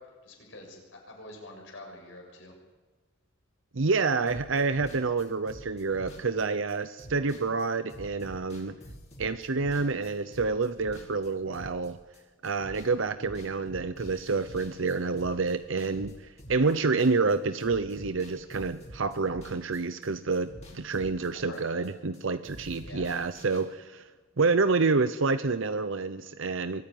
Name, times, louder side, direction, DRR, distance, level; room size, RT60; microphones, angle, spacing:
voice 1, 0.2-2.5 16.6-16.7 21.5-21.8 22.8-23.1, left 1 dB, 65° left, 2 dB, 7.1 m, -46 dB
voice 2, 3.7-8.7 9.2-12.0 12.4-24.1 24.4-26.8, right 4 dB, 65° right, 11 dB, 0.8 m, -28 dB
sound 1, 4.3-12.2 12.4-12.9 13.2-17.3 17.6-20.1 20.3-22.2 22.4-23.6, equal, 35° left, 6.9 m, -47 dB
23.5 x 14.5 x 9.1 m, 1.4 s
head